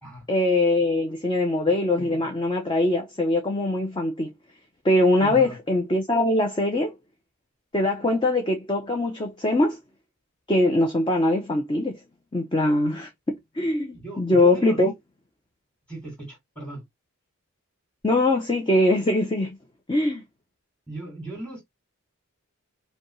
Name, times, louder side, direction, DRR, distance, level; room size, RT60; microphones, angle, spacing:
voice 1, 0.3-4.3 4.8-6.9 7.7-9.8 10.5-11.9 12.3-14.9 18.0-19.6 19.9-20.2, left 1 dB, 20° left, 0.6 m, -22 dB
voice 2, 5.2-5.6 13.9-14.8 15.9-16.8 20.9-21.6, right 2 dB, 5° left, 2.3 m, -37 dB
5.0 x 2.3 x 3.1 m
head